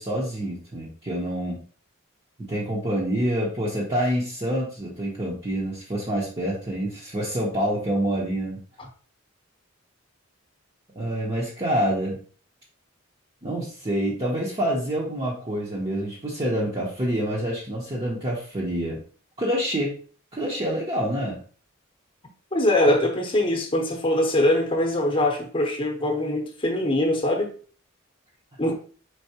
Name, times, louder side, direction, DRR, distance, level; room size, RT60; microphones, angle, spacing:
voice 1, 0.0-1.6 2.5-8.6 10.9-12.2 13.4-19.0 19.4-20.0 20.3-21.4, equal, 25° right, 0.8 m, -27 dB
voice 2, 22.5-27.5 28.6-28.7, left 1 dB, 25° left, 0.9 m, -22 dB
4.6 x 3.7 x 2.8 m
head